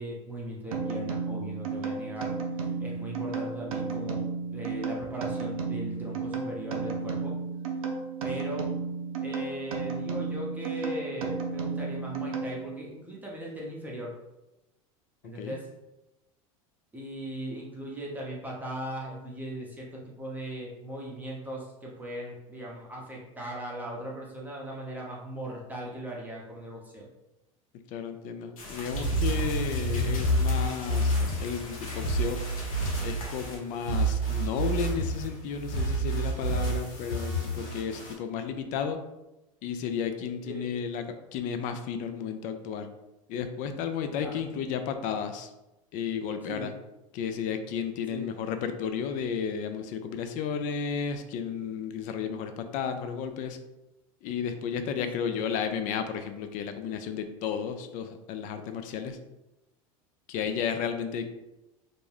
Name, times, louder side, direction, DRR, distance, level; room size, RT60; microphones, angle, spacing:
voice 1, 0.0-4.2 4.5-7.4 8.2-8.7 9.2-14.1 15.2-15.7 16.9-27.1 40.4-40.6 44.2-44.4 46.4-46.7 48.1-48.3 55.2-55.4 60.5-60.8, right 1 dB, 10° right, -4 dB, 0.7 m, -38 dB
sound 1, 0.7-12.9, right 4 dB, 90° right, 0.5 m, -33 dB
voice 2, 27.9-32.4 33.0-39.0 39.6-41.0 41.3-42.9 43.3-45.5 45.9-46.7 47.1-53.6 54.2-59.2 60.3-61.3, left 7 dB, 50° left, 8 dB, 0.4 m, -33 dB
sound 2, 28.6-33.6, left 2 dB, 85° left, 0.7 m, -42 dB
sound 3, 28.9-38.1, right 1 dB, 65° left, 1.4 m, -29 dB
2.6 x 2.1 x 3.2 m, 0.97 s
hypercardioid pair, 95°, 18 cm